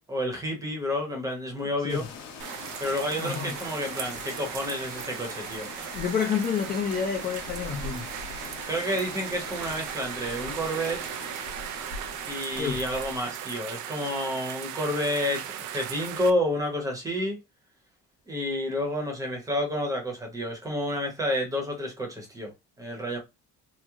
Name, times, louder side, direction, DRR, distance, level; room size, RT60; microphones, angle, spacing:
voice 1, 0.0-2.0 2.8-5.7 8.7-11.0 12.3-17.4 18.3-22.5 22.8-23.2, left 1 dB, 10° right, 0.8 m, -30 dB
voice 2, 1.6-2.0 3.2-3.6 5.9-8.0 12.6-12.8, left 7 dB, 30° left, 0.5 m, -29 dB
sound 1, 1.9-13.6, left 4 dB, 85° left, 1.0 m, -42 dB
sound 2, 2.4-16.3, right 10 dB, 60° right, 0.5 m, -37 dB
3.0 x 2.1 x 3.5 m
cardioid pair, 175°, 32 cm